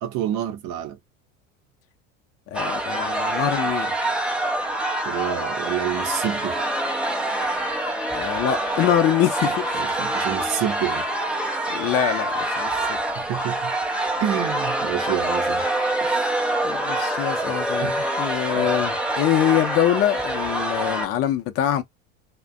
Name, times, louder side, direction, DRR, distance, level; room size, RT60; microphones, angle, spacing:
voice 1, 0.0-1.0 5.1-6.6 9.8-11.0 13.1-13.7 14.2-15.6 17.5-18.1 18.5-18.7, right 11 dB, 45° right, 0.7 m, -28 dB
voice 2, 2.5-4.0 8.1-10.0 11.7-13.0 16.0-16.3 16.6-21.8, left 11 dB, 35° left, 0.7 m, -24 dB
sound 1, 2.5-21.1, right 1 dB, 5° right, 0.4 m, -25 dB
2.4 x 2.2 x 2.4 m
figure-of-eight pair, 70°, 39 cm